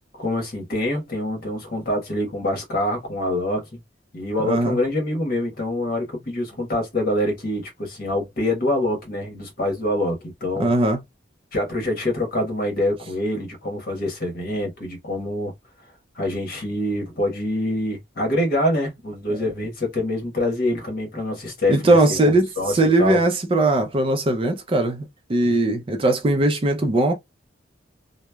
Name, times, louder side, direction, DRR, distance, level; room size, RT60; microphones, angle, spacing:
voice 1, 0.2-3.8 4.1-10.7 11.5-15.5 16.2-22.0 22.3-23.2, left 1 dB, 50° left, 1.2 m, -25 dB
voice 2, 4.5-4.8 10.6-11.0 19.3-19.4 21.7-25.0 25.3-27.1, right 2 dB, 30° right, 0.5 m, -19 dB
3.0 x 2.0 x 2.2 m
head